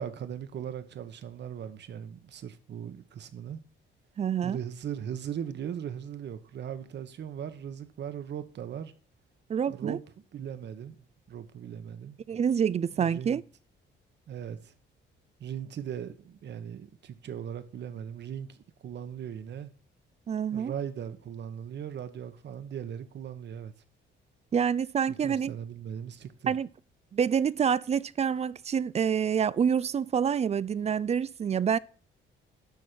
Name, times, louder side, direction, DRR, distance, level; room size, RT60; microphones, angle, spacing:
voice 1, 0.0-3.6 4.4-8.9 9.7-10.0 10.3-12.2 13.0-13.4 14.3-14.7 15.4-18.6 18.8-19.7 20.5-23.7 25.1-26.6, right 9 dB, 60° right, 1.2 m, -38 dB
voice 2, 4.2-4.6 9.5-10.0 12.3-13.4 20.3-20.7 24.5-25.5 26.5-26.7 27.1-31.8, right 7 dB, 35° right, 0.4 m, -27 dB
12.0 x 4.3 x 6.2 m
cardioid pair, 90°, 20 cm